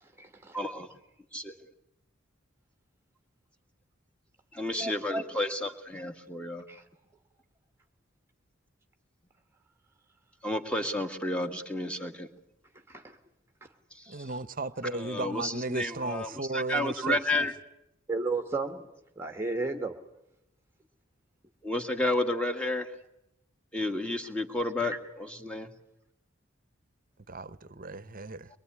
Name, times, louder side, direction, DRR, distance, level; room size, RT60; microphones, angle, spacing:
voice 1, 0.0-0.6 6.7-6.8 12.9-13.2 18.1-18.9 19.2-20.0 24.8-25.0, right 3 dB, 10° right, 1.4 m, -33 dB
voice 2, 0.5-0.9 1.3-1.5 4.5-6.6 10.4-12.3 14.1-14.3 14.9-17.5 21.6-22.9 23.7-25.7, left 1 dB, 5° left, 2.0 m, -31 dB
voice 3, 14.1-17.2 27.3-28.5, right 2 dB, 45° right, 1.0 m, -35 dB
24.0 x 23.0 x 9.7 m
head